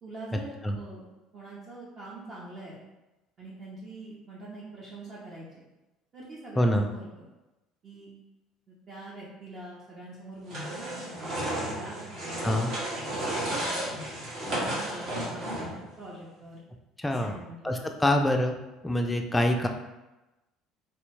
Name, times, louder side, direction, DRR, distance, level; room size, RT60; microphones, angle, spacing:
voice 1, 0.0-2.8 3.4-5.6 6.1-7.3 7.8-8.1 8.7-12.5 13.1-13.9 14.4-16.6 17.1-17.8 19.5-19.6, right 2 dB, 35° right, -5 dB, 0.8 m, -44 dB
voice 2, 6.6-6.9 12.4-12.7 17.0-17.4 17.6-18.6 18.8-19.7, left 1 dB, 10° left, 4 dB, 0.4 m, -25 dB
sound 1, 10.5-15.9, right 1 dB, 55° right, 1.4 m, -33 dB
3.4 x 3.0 x 3.2 m, 1.0 s
cardioid pair, 125°, 0 cm